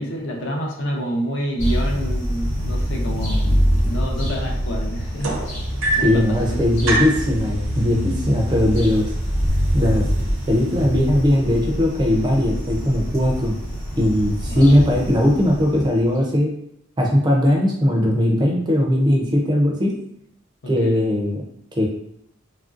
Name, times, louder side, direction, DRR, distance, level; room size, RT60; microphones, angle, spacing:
voice 1, 0.0-5.4 5.9-6.6 14.5-14.8 20.6-21.0, equal, 60° left, 0 dB, 0.6 m, -28 dB
sound 1, 1.6-16.2, equal, 30° left, 1.0 m, -25 dB
sound 2, 5.2-6.3 6.9-7.3 8.3-8.4 8.8-9.2 9.9-10.0, right 2 dB, 80° right, 0.5 m, -23 dB
voice 2, 6.0-9.1 9.7-10.1 10.5-13.5 14.0-16.6 17.0-19.9 20.7-21.4 21.8-21.9, left 1 dB, 20° right, -1 dB, 0.4 m, -19 dB
3.0 x 2.5 x 2.4 m, 0.73 s
head